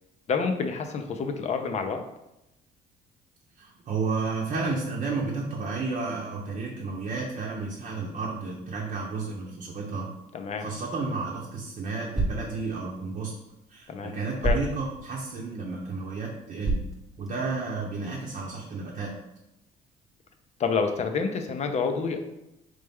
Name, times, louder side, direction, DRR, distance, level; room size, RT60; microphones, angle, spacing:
voice 1, 0.3-2.0 10.3-10.7 13.9-14.1 14.4-14.6 20.6-22.2, left 5 dB, 40° left, 6 dB, 0.6 m, -28 dB
voice 2, 3.6-10.1 10.6-13.3 13.7-16.8 17.2-19.1, right 4 dB, 45° right, -3 dB, 0.8 m, -32 dB
sound 1, 10.9-17.8, right 2 dB, ahead, 0.8 m, -34 dB
4.1 x 3.2 x 3.5 m, 0.88 s
cardioid pair, 110°, 17 cm